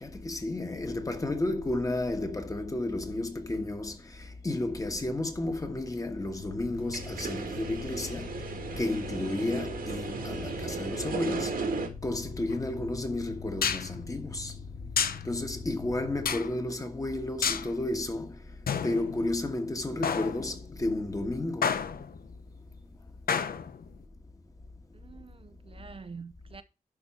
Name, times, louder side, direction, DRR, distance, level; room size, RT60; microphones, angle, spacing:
voice 1, 0.0-4.0 4.4-8.3 8.8-11.6 12.0-14.5 15.3-18.3 18.8-21.7, left 2 dB, 25° left, 1.4 m, -32 dB
sound 1, 6.4-16.4, left 6 dB, 50° left, 1.9 m, -43 dB
sound 2, 6.8-11.9, right 4 dB, 80° right, 1.8 m, -36 dB
sound 3, 12.5-12.6 13.6-13.9 15.0-15.3 16.3-16.5 17.4-17.7 18.7-19.6 20.0-20.7 21.6-22.3 23.3-23.9, left 7 dB, 85° left, 0.8 m, -30 dB
voice 2, 24.9-26.6, right 5 dB, 40° right, 0.5 m, -46 dB
11.0 x 4.2 x 5.5 m
wide cardioid pair, 145°, 15 cm